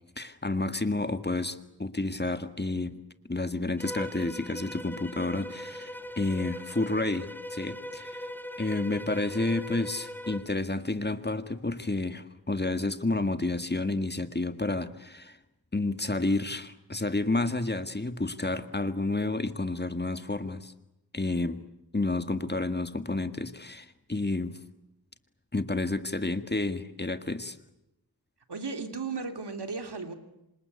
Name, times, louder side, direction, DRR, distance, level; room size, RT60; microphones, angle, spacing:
voice 1, 0.2-3.0 3.3-8.3 8.6-15.4 15.7-20.7 21.1-21.6 21.9-24.6 25.5-27.6, left 2 dB, 25° left, 10 dB, 1.8 m, -30 dB
Bowed string instrument, 3.8-10.5, equal, 5° left, 2.2 m, -40 dB
voice 2, 28.5-30.1, right 4 dB, 80° right, 7 dB, 3.2 m, -35 dB
27.5 x 26.0 x 8.3 m, 0.89 s
wide cardioid pair, 75°, 39 cm